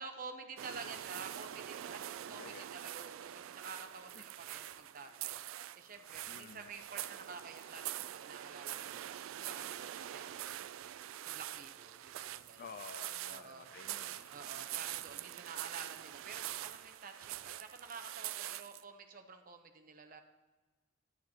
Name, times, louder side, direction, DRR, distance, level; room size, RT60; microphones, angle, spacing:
voice 1, 0.0-5.4 5.7-10.7 11.2-12.6 13.3-13.7 14.3-20.2, right 4 dB, 45° right, 5 dB, 0.8 m, -50 dB
sound 1, 0.6-18.8, right 12 dB, 85° right, 0.3 m, -44 dB
voice 2, 2.3-2.7 4.1-4.3 6.3-6.7 12.6-14.3, left 5 dB, 45° left, 12 dB, 0.4 m, -51 dB
11.0 x 9.4 x 2.9 m, 1.2 s
head